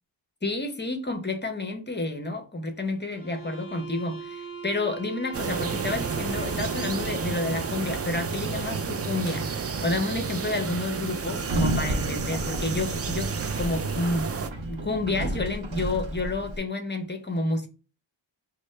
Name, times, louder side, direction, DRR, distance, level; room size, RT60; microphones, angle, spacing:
voice 1, 0.4-9.5 9.8-14.3 14.7-17.7, left 2 dB, 25° left, 0.6 m, -30 dB
sound 1, 3.1-8.1, right 6 dB, 10° right, 1.5 m, -41 dB
sound 2, 5.3-14.5, right 5 dB, 35° right, 0.4 m, -31 dB
Sliding door, 11.4-16.6, right 1 dB, 75° right, 0.7 m, -32 dB
4.2 x 2.1 x 3.1 m
wide cardioid pair, 90°, 46 cm